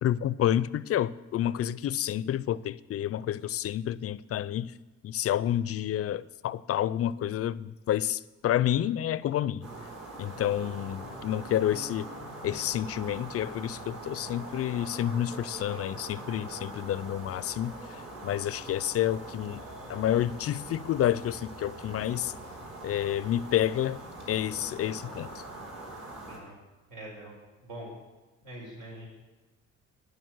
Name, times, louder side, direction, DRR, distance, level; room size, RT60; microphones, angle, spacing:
voice 1, 0.0-4.7 5.0-9.6 10.2-12.1 12.4-17.8 18.2-19.6 19.9-22.3 22.8-24.0 24.3-25.3, left 11 dB, 50° left, 19 dB, 0.4 m, -29 dB
sound 1, 9.6-26.4, right 2 dB, 55° right, 3.4 m, -43 dB
voice 2, 26.9-27.3 27.6-27.9 28.4-29.0, right 1 dB, 80° right, -2 dB, 4.3 m, -43 dB
9.4 x 9.3 x 6.2 m, 1.2 s
cardioid pair, 90°, 30 cm